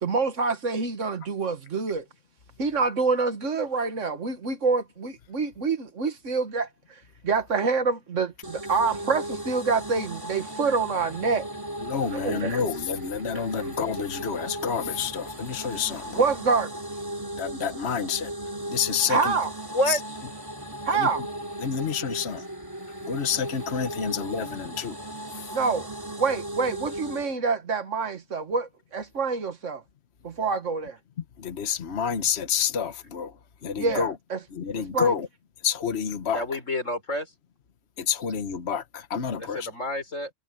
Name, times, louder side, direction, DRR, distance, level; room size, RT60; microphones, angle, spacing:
voice 1, 0.0-2.1 2.6-6.7 7.2-11.5 12.0-12.6 13.3-13.7 16.2-16.8 19.1-19.5 20.9-21.3 25.5-25.9 26.2-29.8 30.2-31.0 33.8-34.4 34.8-35.1, right 4 dB, 80° right, 2.0 m, -26 dB
sound 1, 8.4-27.3, right 1 dB, 15° right, 3.4 m, -37 dB
voice 2, 11.8-16.2 17.4-18.3 18.7-19.3 19.9-20.0 20.9-21.1 21.6-22.4 23.1-25.0 31.4-33.3 33.6-34.1 34.5-35.3 35.6-36.4 38.0-39.7, left 7 dB, 60° left, 1.4 m, -28 dB
voice 3, 19.7-20.2 36.3-37.3 39.4-40.3, equal, 90° left, 5.6 m, -29 dB
omnidirectional pair, 1.3 m